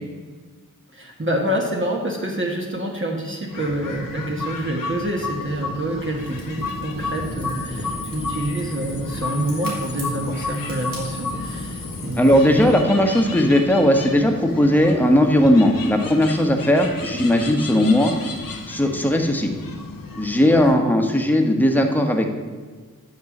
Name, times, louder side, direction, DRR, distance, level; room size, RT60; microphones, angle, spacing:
voice 1, 0.9-12.6 17.0-17.1, right 1 dB, 35° right, -1 dB, 1.3 m, -27 dB
sound 1, 3.5-20.7, left 3 dB, 85° left, 1.0 m, -33 dB
Fire, 6.1-12.6, equal, 85° right, 2.4 m, -36 dB
voice 2, 12.2-18.1 18.7-19.5 20.1-22.3, left 1 dB, 5° left, 3 dB, 1.2 m, -17 dB
9.3 x 3.7 x 7.2 m, 1.5 s
cardioid pair, 50°, 33 cm